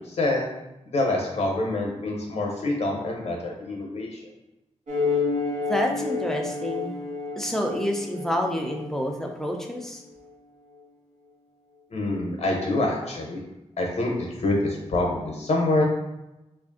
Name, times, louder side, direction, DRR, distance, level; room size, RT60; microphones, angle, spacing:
voice 1, 0.1-0.5 0.9-4.2 11.9-13.4 13.8-15.8, left 2 dB, 60° left, -1 dB, 0.7 m, -26 dB
sound 1, 4.9-9.8, left 4 dB, 70° right, 1.1 m, -30 dB
voice 2, 5.7-6.9 7.4-10.0, equal, 5° left, 2 dB, 0.4 m, -28 dB
3.2 x 2.5 x 3.7 m, 0.96 s
wide cardioid pair, 145°, 12 cm